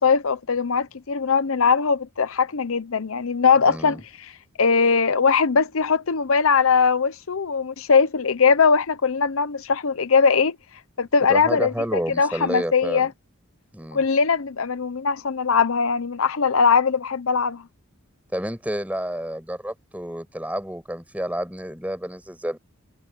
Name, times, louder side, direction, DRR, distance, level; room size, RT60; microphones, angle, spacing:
voice 1, 0.0-4.0 4.6-10.6 11.0-13.1 13.9-17.6, left 5 dB, 75° left, 0.8 m, -20 dB
voice 2, 3.7-4.0 11.2-13.1 13.7-14.0 18.3-22.6, equal, 5° right, 6.2 m, -30 dB
head